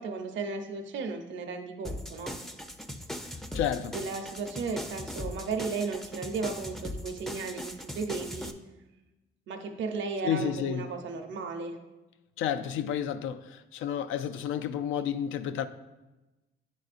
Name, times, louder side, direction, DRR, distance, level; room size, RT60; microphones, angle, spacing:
voice 1, 0.0-2.3 3.9-8.6 9.5-11.8, right 4 dB, 70° right, 0.7 m, -35 dB
sound 1, 1.8-8.5, left 1 dB, ahead, 0.4 m, -39 dB
voice 2, 3.2-3.9 10.2-10.8 12.4-15.7, left 9 dB, 80° left, 0.4 m, -31 dB
9.8 x 3.9 x 2.5 m
cardioid pair, 90°, 20 cm